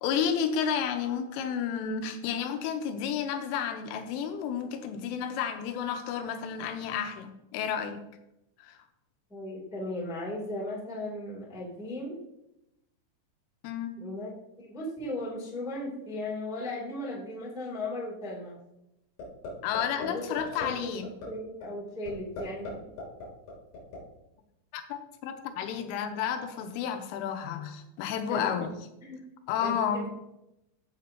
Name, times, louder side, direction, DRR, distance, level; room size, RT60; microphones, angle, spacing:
voice 1, 0.0-8.0 8.6-8.8 13.6-13.9 19.6-21.1 24.7-28.7 29.5-30.1, left 8 dB, 90° left, 7 dB, 3.4 m, -31 dB
voice 2, 9.3-12.2 14.0-18.6 20.0-21.0 21.3-22.9 28.3-28.5 29.0-29.2 29.6-30.1, left 1 dB, ahead, -4 dB, 0.8 m, -37 dB
sound 1, 19.2-19.5 19.7-20.1 20.4-20.6 21.0-21.3 21.6-21.7 22.1-22.7 23.0-24.0, left 4 dB, 55° left, 5.1 m, -38 dB
15.0 x 7.5 x 2.8 m, 0.87 s
omnidirectional pair, 5.6 m